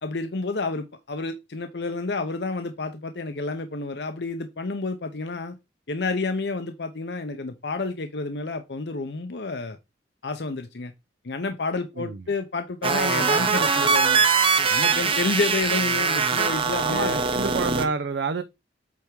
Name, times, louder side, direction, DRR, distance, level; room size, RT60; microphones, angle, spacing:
voice 1, 0.0-5.5 5.9-9.8 10.2-10.9 11.2-14.2 14.7-17.2, left 3 dB, 70° left, 0.7 m, -30 dB
sound 1, 12.8-17.9, right 5 dB, 30° right, 0.9 m, -22 dB
voice 2, 16.9-18.4, right 4 dB, 80° right, 0.5 m, -28 dB
8.3 x 3.5 x 4.6 m
head